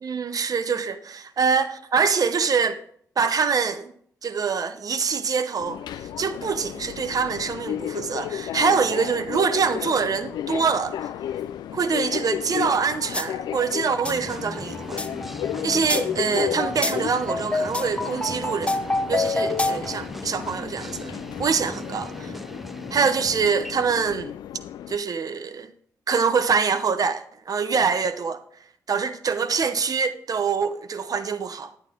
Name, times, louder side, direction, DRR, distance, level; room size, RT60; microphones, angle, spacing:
voice 1, 0.0-2.8 3.2-3.9 4.2-11.1 11.7-15.0 15.6-21.1 21.4-22.4 22.9-24.3 24.9-25.7 26.1-28.4 28.9-31.7, right 5 dB, 60° right, 0.8 m, -25 dB
Subway metro underground, 5.6-25.0, left 10 dB, 90° left, 0.3 m, -33 dB
sound 1, 13.1-13.3 13.6-20.0, left 2 dB, 15° left, 0.9 m, -28 dB
sound 2, 14.0-23.7, equal, ahead, 0.6 m, -39 dB
9.5 x 8.7 x 3.7 m
supercardioid pair, 50°, 7 cm